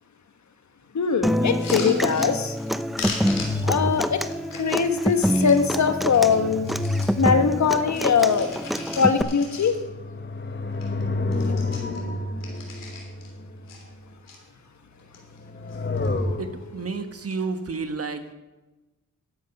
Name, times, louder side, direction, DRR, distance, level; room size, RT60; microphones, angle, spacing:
voice 1, 0.9-2.6 3.4-4.3 4.5-6.7 7.2-8.5 9.0-9.7, left 6 dB, 55° left, 8 dB, 1.3 m, -22 dB
Human voice / Acoustic guitar, 1.2-9.2, equal, ahead, 0.6 m, -26 dB
sound 1, 1.6-2.7 3.0-5.6 6.0-7.2 7.6-10.0 10.4-10.5 10.7-11.0 11.3-13.3 13.7-14.4 14.9-15.4 15.7-16.2 17.1-17.4, left 4 dB, 75° left, 3.2 m, -39 dB
sound 2, 2.9-4.4 5.8-8.1 8.8-13.9 15.2-16.9, left 2 dB, 35° left, 1.3 m, -30 dB
voice 2, 16.4-18.3, right 4 dB, 45° right, 7 dB, 1.4 m, -31 dB
12.5 x 7.9 x 5.4 m, 1.1 s
cardioid pair, 55°, 33 cm